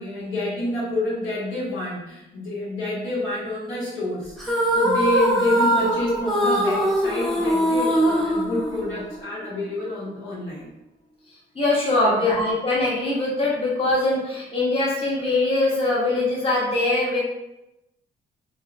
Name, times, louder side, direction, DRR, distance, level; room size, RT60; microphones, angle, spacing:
voice 1, 0.0-10.7 12.0-12.1, left 1 dB, 80° left, -7 dB, 1.2 m, -28 dB
sound 1, 4.4-9.2, equal, ahead, 0.7 m, -22 dB
voice 2, 11.5-17.2, left 2 dB, 30° left, -6 dB, 0.9 m, -22 dB
2.7 x 2.1 x 2.5 m, 0.92 s
cardioid pair, 90°, 20 cm